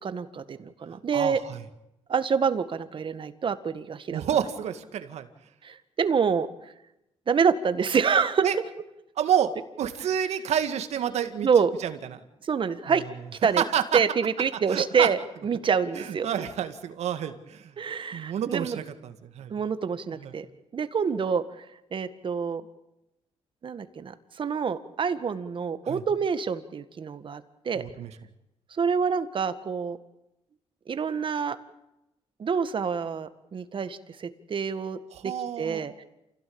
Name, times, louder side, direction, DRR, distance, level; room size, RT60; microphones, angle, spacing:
voice 1, 0.0-1.4 2.1-4.2 5.6-6.5 7.3-8.4 11.4-11.7 12.4-13.0 13.4-13.6 13.9-16.3 17.8-18.8 19.5-20.5 20.7-21.4 21.9-22.6 23.6-27.8 28.8-30.0 30.9-31.6 32.4-35.3 35.6-36.0, right 6 dB, 50° right, 11 dB, 1.8 m, -27 dB
voice 2, 1.1-1.6 4.1-5.3 8.4-8.6 9.2-11.5 11.8-12.2 12.9-13.1 13.6-14.0 14.7-15.1 15.9-17.7 18.1-19.5 20.1-20.3 25.8-26.0 27.7-28.1 35.1-35.8, right 9 dB, 80° right, 9 dB, 2.1 m, -29 dB
28.0 x 17.0 x 8.8 m, 0.90 s
cardioid pair, 95°, 11 cm